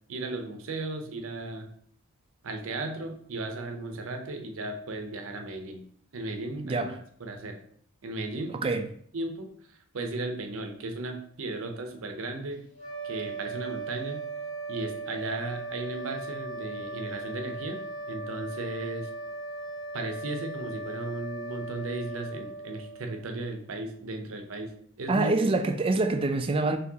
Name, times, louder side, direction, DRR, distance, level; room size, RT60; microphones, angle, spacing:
voice 1, 0.1-1.7 2.4-5.8 6.1-7.6 8.0-8.5 9.1-12.6 13.0-14.2 14.7-17.8 18.1-19.1 19.9-24.7 25.0-25.3, right 2 dB, 65° right, 0.6 m, -35 dB
sound 1, 12.7-23.3, right 2 dB, 75° left, 1.8 m, -38 dB
voice 2, 25.1-26.8, right 3 dB, 25° right, 0.3 m, -25 dB
4.5 x 3.2 x 2.8 m
head